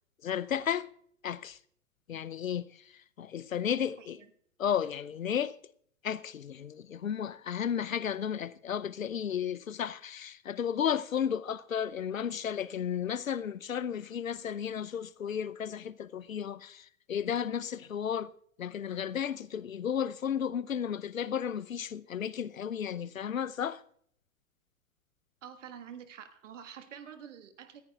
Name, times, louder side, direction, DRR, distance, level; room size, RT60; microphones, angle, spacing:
voice 1, 0.2-0.9 1.2-1.6 2.1-2.9 3.2-4.2 4.6-5.6 6.0-18.3 18.6-23.8, left 8 dB, 80° left, 0.7 m, -33 dB
voice 2, 25.4-27.8, right 8 dB, 65° right, 1.7 m, -47 dB
19.5 x 14.0 x 2.4 m
figure-of-eight pair, 100°, 40 cm